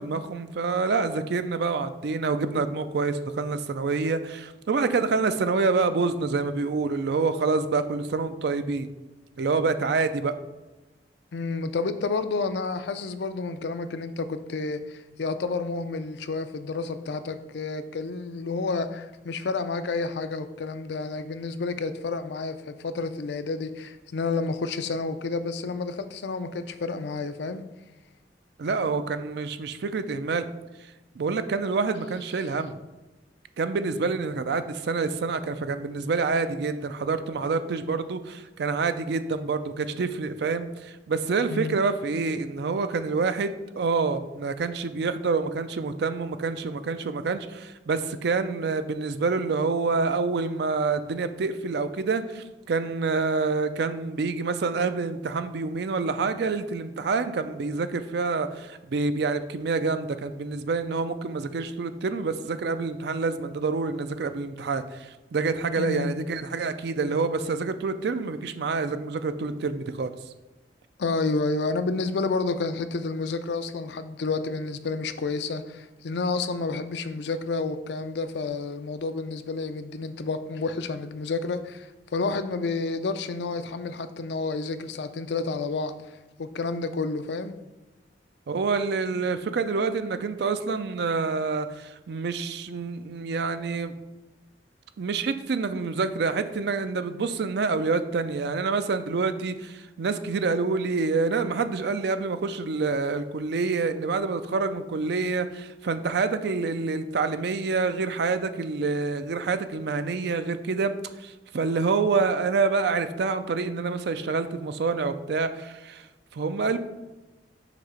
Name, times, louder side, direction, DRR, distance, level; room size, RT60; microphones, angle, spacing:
voice 1, 0.0-8.9 9.4-10.3 28.6-30.5 31.2-32.8 33.6-70.1 88.5-93.9 95.0-116.1 116.3-116.8, right 4 dB, 65° right, 11 dB, 0.4 m, -27 dB
voice 2, 11.3-27.6 41.5-41.8 65.8-66.2 71.0-85.9 86.4-87.6, left 3 dB, 70° left, 10 dB, 0.4 m, -30 dB
6.0 x 2.9 x 5.6 m, 1.1 s
head